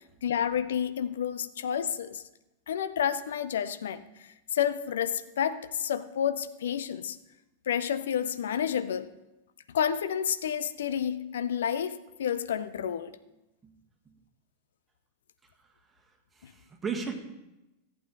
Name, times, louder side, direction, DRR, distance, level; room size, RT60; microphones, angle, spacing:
voice 1, 0.2-2.2 2.7-7.2 7.7-9.1 9.7-13.2 16.4-16.5, left 9 dB, 60° left, 13 dB, 0.6 m, -30 dB
voice 2, 16.3-17.2, right 5 dB, 15° right, 3 dB, 1.7 m, -35 dB
14.0 x 8.7 x 4.0 m, 0.94 s
figure-of-eight pair, 90°, 0 cm